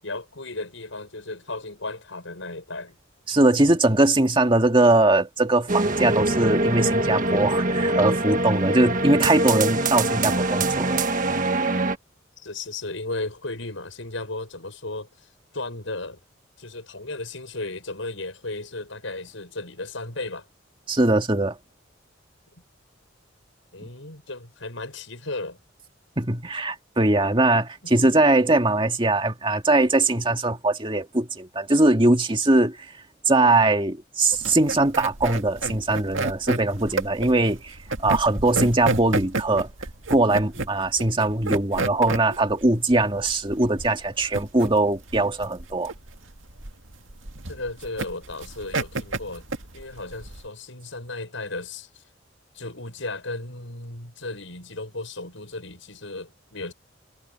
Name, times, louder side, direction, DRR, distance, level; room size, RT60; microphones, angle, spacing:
voice 1, 0.0-3.0 12.4-15.3 15.5-16.2 16.6-20.5 23.7-25.6 27.8-27.9 47.5-49.5 49.7-52.0 52.5-56.7, left 2 dB, 75° left, 6.7 m, -35 dB
voice 2, 3.3-11.0 20.9-21.6 26.2-32.8 33.3-39.7 40.1-45.9, right 2 dB, 25° right, 2.0 m, -21 dB
sound 1, 5.7-12.0, right 2 dB, 40° right, 1.5 m, -23 dB
sound 2, 34.3-50.5, right 3 dB, 80° right, 2.0 m, -30 dB
head